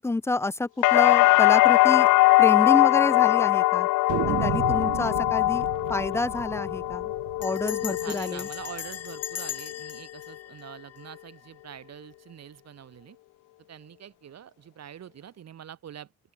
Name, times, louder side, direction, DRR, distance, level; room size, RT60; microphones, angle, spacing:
voice 1, 0.0-2.1 2.4-3.9 4.3-7.1 7.4-8.5, left 2 dB, 10° left, 0.4 m, -28 dB
sound 1, 0.8-8.7 9.1-9.8, left 20 dB, 85° left, 0.5 m, -21 dB
sound 2, 1.3-1.4 1.7-1.8 2.1-2.2 2.9-3.4 4.1-8.9, right 16 dB, 85° right, 1.2 m, -35 dB
Bell, 5.3-5.7 5.9-6.0 6.2-6.6 7.4-11.5, left 10 dB, 55° left, 1.0 m, -39 dB
voice 2, 7.6-13.2 13.7-16.1, right 9 dB, 60° right, 2.5 m, -44 dB
open air
cardioid pair, 90°, 30 cm